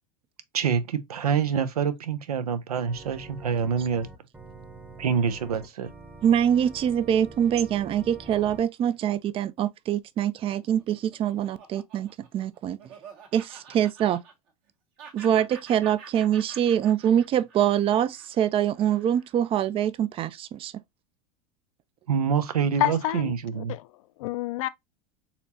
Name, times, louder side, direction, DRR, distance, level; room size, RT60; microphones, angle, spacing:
voice 1, 0.5-4.1 5.0-5.9 22.1-23.7, right 7 dB, 85° right, 0.5 m, -26 dB
Organ, 2.8-8.7, right 2 dB, 10° right, 0.9 m, -45 dB
voice 2, 6.2-12.8 13.3-14.2 15.1-20.7, right 10 dB, 30° right, 0.4 m, -24 dB
Laughter, 10.6-14.7 15.0-19.4, right 6 dB, 55° right, 1.4 m, -48 dB
voice 3, 22.8-24.7, left 14 dB, 65° left, 0.4 m, -29 dB
4.2 x 2.9 x 2.6 m
hypercardioid pair, 90°, 19 cm